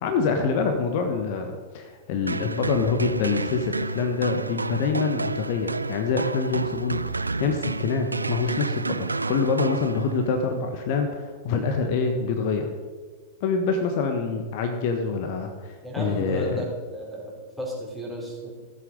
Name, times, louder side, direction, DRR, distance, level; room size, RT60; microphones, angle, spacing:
voice 1, 0.0-12.7 13.4-16.6, left 4 dB, 50° left, 5 dB, 1.3 m, -26 dB
sound 1, 2.3-10.4, right 3 dB, 85° right, 0.3 m, -30 dB
voice 2, 15.8-17.3 17.6-18.5, equal, ahead, -4 dB, 4.2 m, -33 dB
15.0 x 8.0 x 5.3 m, 1.5 s
figure-of-eight pair, 95°, 0 cm